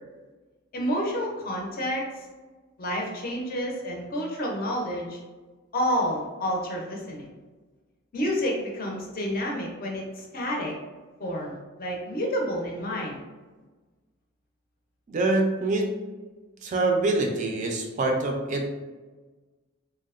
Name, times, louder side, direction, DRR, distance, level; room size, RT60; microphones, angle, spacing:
voice 1, 0.7-2.3 2.8-5.2 5.7-7.3 8.1-10.8 11.2-13.2, equal, 45° left, -1 dB, 0.5 m, -29 dB
voice 2, 15.1-16.0 16.6-18.7, right 2 dB, 40° right, 2 dB, 0.3 m, -25 dB
2.7 x 2.0 x 2.3 m, 1.3 s
head